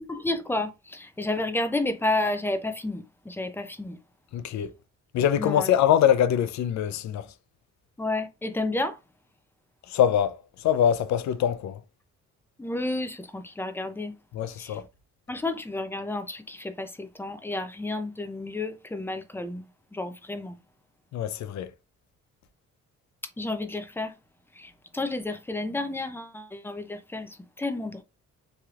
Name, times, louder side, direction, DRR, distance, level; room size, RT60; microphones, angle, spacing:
voice 1, 0.1-4.0 5.4-5.7 8.0-9.0 12.6-14.2 14.6-14.8 15.3-19.6 19.9-20.6 23.4-24.1 24.6-28.0, left 2 dB, 5° left, 0.5 m, -31 dB
voice 2, 4.3-4.7 5.1-7.3 9.9-11.8 14.3-14.9 21.1-21.7, left 10 dB, 65° left, 0.5 m, -24 dB
3.3 x 2.9 x 2.4 m
cardioid pair, 90°, 30 cm